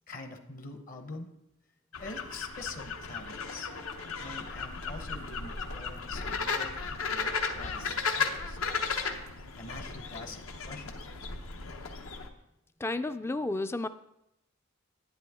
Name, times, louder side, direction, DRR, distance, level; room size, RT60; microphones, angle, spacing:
voice 1, 0.1-1.3 2.0-3.7 4.2-9.0 9.6-11.0, left 3 dB, 40° left, 7 dB, 0.8 m, -45 dB
sound 1, 1.9-12.3, left 4 dB, 80° left, 0.9 m, -35 dB
voice 2, 12.8-13.9, left 2 dB, 10° left, 11 dB, 0.3 m, -31 dB
10.5 x 9.3 x 3.5 m, 0.85 s
head